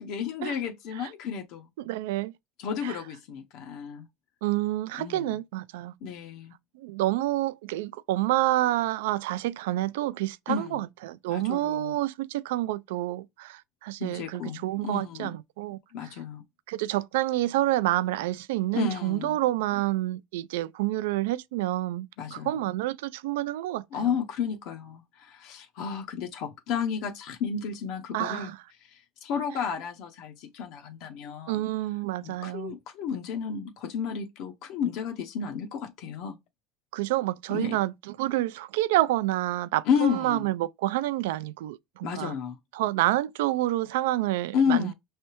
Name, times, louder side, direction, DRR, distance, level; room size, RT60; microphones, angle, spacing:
voice 1, 0.0-1.7 2.6-4.1 5.0-5.4 6.0-6.5 10.5-10.8 11.3-12.0 14.0-15.4 15.9-16.4 18.7-19.4 22.2-22.7 23.9-28.5 28.8-31.6 32.2-36.4 37.5-37.8 39.8-40.5 42.0-42.6 44.5-44.9, left 7 dB, 65° left, 0.7 m, -32 dB
voice 2, 1.9-2.3 2.8-3.0 4.4-5.9 6.8-15.8 16.7-23.8 28.1-28.6 31.5-32.7 36.9-37.9 38.2-42.3 42.7-44.9, right 16 dB, 85° right, 0.3 m, -28 dB
5.5 x 3.2 x 2.9 m
supercardioid pair, 120°, 0 cm